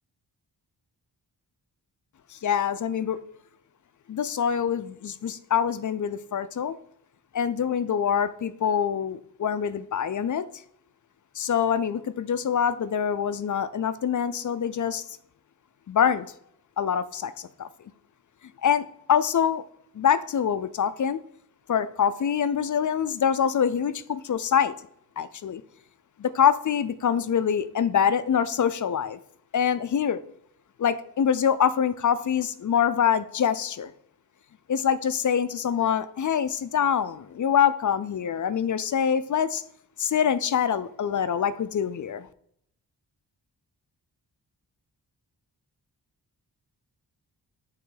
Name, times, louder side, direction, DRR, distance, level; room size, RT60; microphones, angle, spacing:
voice 1, 2.3-3.2 4.1-6.8 7.3-10.5 11.4-15.0 15.9-16.3 16.8-17.7 18.6-19.6 19.9-21.2 21.7-24.7 25.2-25.6 26.2-29.2 29.5-30.2 30.8-33.9 34.7-39.6 40.0-42.3, left 8 dB, 50° left, 13 dB, 0.4 m, -25 dB
8.4 x 3.2 x 3.8 m, 0.70 s
wide cardioid pair, 100°, 41 cm